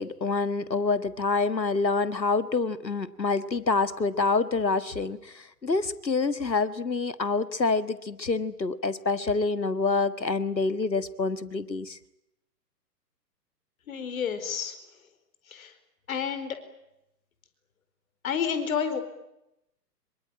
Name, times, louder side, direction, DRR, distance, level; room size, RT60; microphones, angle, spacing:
voice 1, 0.0-12.0, left 4 dB, 85° left, 14 dB, 1.8 m, -27 dB
voice 2, 13.9-14.7 15.5-15.7 16.1-16.6 18.2-19.0, left 7 dB, 55° left, 10 dB, 4.6 m, -29 dB
26.0 x 23.0 x 8.9 m, 0.86 s
figure-of-eight pair, 120°, 50 cm